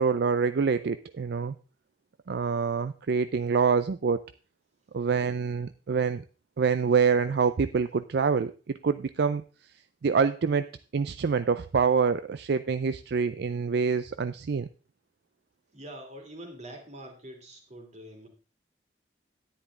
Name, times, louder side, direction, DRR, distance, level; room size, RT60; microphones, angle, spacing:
voice 1, 0.0-1.5 2.3-4.2 4.9-6.2 6.6-8.5 8.8-9.4 10.0-14.7, right 5 dB, 65° right, 12 dB, 0.4 m, -26 dB
voice 2, 15.7-18.3, right 1 dB, 40° right, 2 dB, 2.9 m, -44 dB
10.5 x 10.0 x 3.7 m, 0.34 s
head